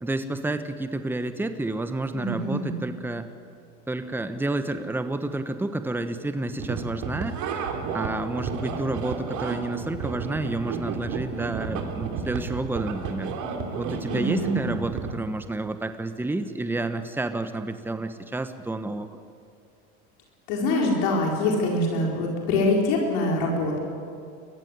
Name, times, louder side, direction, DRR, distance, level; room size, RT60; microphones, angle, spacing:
voice 1, 0.0-3.3 3.9-7.4 7.9-13.3 13.7-19.2, right 2 dB, 5° right, 9 dB, 1.1 m, -30 dB
voice 2, 2.1-2.7 14.1-14.7 20.5-23.8, left 2 dB, 70° left, -1 dB, 4.5 m, -24 dB
sound 1, 6.6-15.2, right 5 dB, 55° right, 3.4 m, -32 dB
22.5 x 14.5 x 9.8 m, 2.4 s
supercardioid pair, 95°, 35 cm